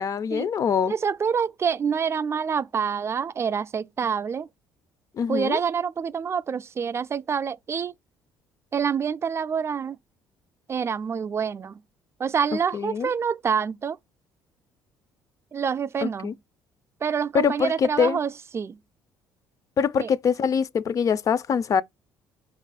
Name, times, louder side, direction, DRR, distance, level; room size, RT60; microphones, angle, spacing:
voice 1, 0.0-0.9 5.2-5.6 12.7-13.1 16.0-16.3 17.3-18.2 19.8-21.8, left 7 dB, 45° left, 0.4 m, -24 dB
voice 2, 0.9-4.5 5.3-7.9 8.7-10.0 10.7-11.8 12.2-14.0 15.5-16.4 17.0-18.8 20.0-20.1, right 6 dB, 35° right, 0.4 m, -27 dB
4.5 x 2.5 x 4.7 m
supercardioid pair, 70°, 8 cm